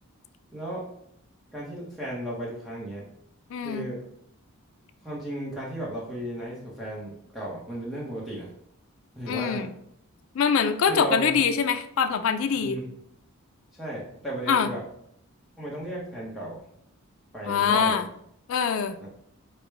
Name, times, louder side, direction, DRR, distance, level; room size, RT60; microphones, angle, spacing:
voice 1, 0.5-0.9 1.5-3.1 3.6-4.0 5.0-8.5 9.1-9.7 10.9-11.4 12.5-12.8 13.8-14.8 15.6-16.6 17.3-18.0 19.0-19.1, right 1 dB, ahead, -6 dB, 0.7 m, -35 dB
voice 2, 3.5-3.9 9.3-9.7 10.4-12.8 14.5-14.7 17.4-18.0 18.5-19.0, left 6 dB, 65° left, 8 dB, 0.3 m, -24 dB
4.8 x 2.1 x 4.6 m, 0.72 s
head